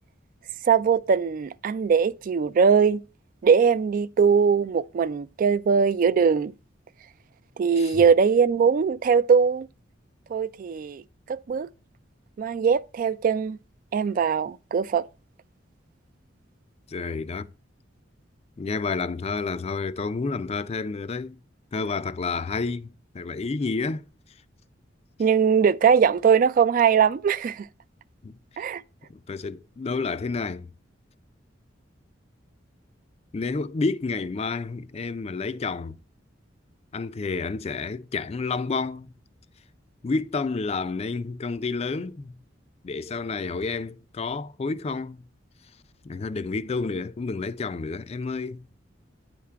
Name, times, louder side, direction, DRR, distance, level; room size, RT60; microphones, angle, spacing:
voice 1, 0.7-3.0 3.4-6.5 7.6-9.7 10.3-11.0 11.3-11.7 12.4-13.6 13.9-15.1 25.2-27.7 28.6-28.8, right 6 dB, 45° right, 0.3 m, -21 dB
voice 2, 16.9-17.5 18.6-21.4 21.7-22.9 23.1-24.1 28.2-28.4 29.3-30.7 33.3-36.0 36.9-39.1 40.0-42.4 42.8-45.2 46.0-48.7, left 4 dB, 35° left, 0.4 m, -30 dB
9.4 x 3.6 x 5.6 m
head